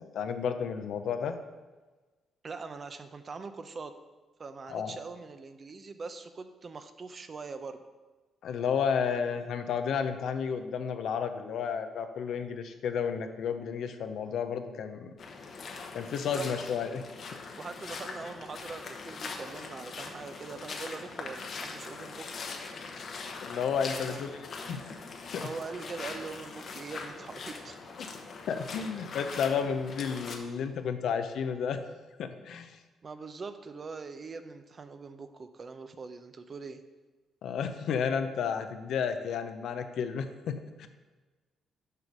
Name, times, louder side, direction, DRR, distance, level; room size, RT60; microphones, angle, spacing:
voice 1, 0.0-1.4 4.7-4.9 8.4-15.1 15.9-17.0 23.4-24.3 24.7-24.8 25.3-25.5 28.0-28.1 28.5-31.8 32.2-32.8 37.4-40.9, left 7 dB, 70° left, 8 dB, 0.7 m, -32 dB
voice 2, 2.4-3.9 4.4-7.8 16.1-16.5 17.6-22.3 23.9-24.2 25.4-27.9 33.0-36.8, right 4 dB, 40° right, 9 dB, 0.6 m, -42 dB
sound 1, 15.2-30.4, left 4 dB, 55° left, 1.0 m, -42 dB
6.7 x 5.1 x 6.2 m, 1.3 s
cardioid pair, 90°, 0 cm